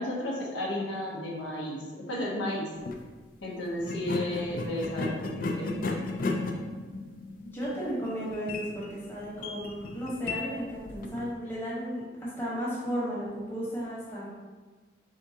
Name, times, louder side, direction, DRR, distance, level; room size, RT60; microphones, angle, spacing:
voice 1, 0.0-2.7 3.4-5.9, left 1 dB, 85° left, -3 dB, 0.8 m, -33 dB
sound 1, 2.7-3.0 3.8-11.3, left 3 dB, 45° left, 0.3 m, -35 dB
voice 2, 7.4-14.3, equal, 10° left, -8 dB, 1.0 m, -34 dB
3.7 x 3.5 x 2.8 m, 1.4 s
head